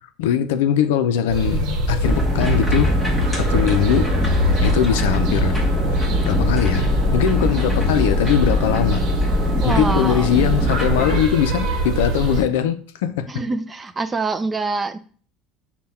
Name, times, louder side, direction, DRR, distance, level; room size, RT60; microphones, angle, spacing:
voice 1, 0.2-2.9 3.3-4.1 4.6-5.6 6.2-9.0 9.6-13.3, left 9 dB, 90° left, 0.4 m, -21 dB
sound 1, 1.3-12.4, right 1 dB, 60° right, 0.9 m, -23 dB
sound 2, 2.0-11.2, left 1 dB, ahead, 1.2 m, -23 dB
voice 2, 9.6-10.3 13.2-15.0, right 3 dB, 20° right, 0.3 m, -25 dB
5.5 x 2.2 x 4.1 m
supercardioid pair, 115°, 0 cm